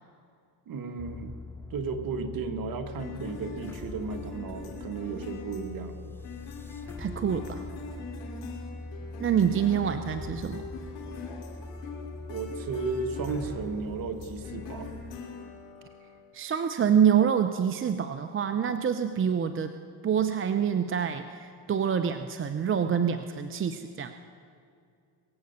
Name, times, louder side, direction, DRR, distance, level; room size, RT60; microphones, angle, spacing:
voice 1, 0.7-1.3 1.7-6.0 12.3-14.9, right 4 dB, 50° right, 6 dB, 1.7 m, -34 dB
sound 1, 1.0-15.2, left 2 dB, 5° left, 0.8 m, -42 dB
sound 2, 3.0-16.2, left 4 dB, 80° left, 2.9 m, -43 dB
voice 2, 7.0-7.6 9.2-10.6 16.3-19.7 20.0-24.1, right 8 dB, 30° right, 9 dB, 0.7 m, -26 dB
22.5 x 7.8 x 6.9 m, 2.4 s
supercardioid pair, 80°, 43 cm